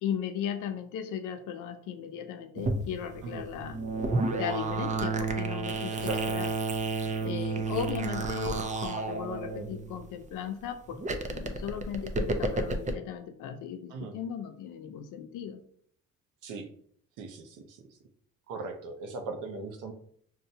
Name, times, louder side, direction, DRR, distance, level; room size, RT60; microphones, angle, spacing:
voice 1, 0.0-3.8 4.4-6.5 7.2-15.6, left 8 dB, 85° left, 8 dB, 0.5 m, -37 dB
sound 1, 2.6-10.2 10.9-12.9, right 3 dB, 25° right, 0.4 m, -31 dB
voice 2, 17.2-17.8 18.5-19.9, right 3 dB, 85° right, 4 dB, 0.7 m, -38 dB
5.5 x 2.1 x 2.7 m, 0.63 s
cardioid pair, 90°, 30 cm